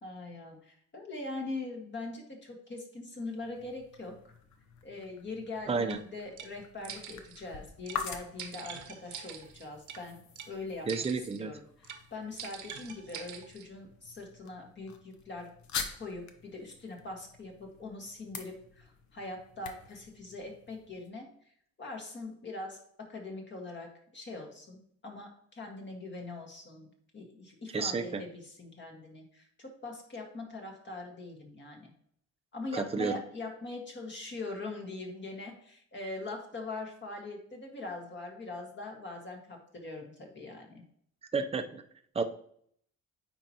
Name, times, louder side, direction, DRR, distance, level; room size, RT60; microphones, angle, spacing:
voice 1, 0.0-4.3 4.8-10.2 10.5-10.9 11.2-15.5 16.0-21.3 21.8-26.9 27.1-31.9 32.5-40.8, left 2 dB, 40° left, 1 dB, 1.7 m, -42 dB
sound 1, 3.3-21.1, left 6 dB, 70° left, 0.9 m, -46 dB
voice 2, 5.7-6.0 10.9-11.5 27.7-28.2 32.7-33.2 41.3-41.8 42.1-42.2, right 4 dB, 20° right, 7 dB, 0.6 m, -31 dB
sound 2, 5.9-6.0 6.4-6.5 6.8-7.4 7.9-8.0 8.4-10.0 10.4-10.5 10.9-11.4 11.8-12.0 12.4-13.7, right 8 dB, 75° right, 1.0 m, -44 dB
8.9 x 4.4 x 2.9 m, 0.65 s
cardioid pair, 90°, 30 cm